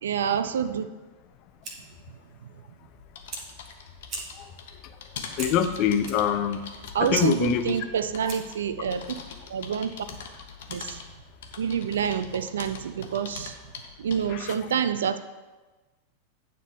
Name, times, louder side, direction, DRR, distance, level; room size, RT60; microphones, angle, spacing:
voice 1, 0.0-0.9 6.9-9.0 9.5-9.9 10.7-11.0 11.6-13.6 14.0-15.2, right 7 dB, 65° right, 12 dB, 0.4 m, -27 dB
Fire, 1.2-8.7, right 2 dB, 40° right, 1.3 m, -43 dB
sound 1, 2.9-14.4, left 6 dB, 55° left, 1.0 m, -43 dB
voice 2, 5.4-6.6 7.0-7.8 14.3-14.5, left 9 dB, 40° left, 9 dB, 0.6 m, -25 dB
9.2 x 3.7 x 6.9 m, 1.2 s
figure-of-eight pair, 90°, 0 cm